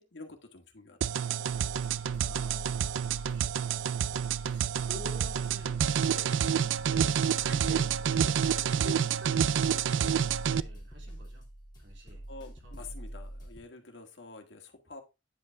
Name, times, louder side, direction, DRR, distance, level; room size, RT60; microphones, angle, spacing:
voice 1, 0.0-1.9 12.3-15.0, left 3 dB, 70° left, 1.8 m, -49 dB
sound 1, 1.0-10.6, right 8 dB, 85° right, 0.4 m, -28 dB
sound 2, 1.5-13.6, right 1 dB, 25° left, 2.4 m, -45 dB
voice 2, 2.2-4.0 4.5-6.4 6.8-11.5 11.8-12.3 12.6-12.9, equal, 70° right, 3.1 m, -49 dB
9.6 x 5.4 x 3.4 m
head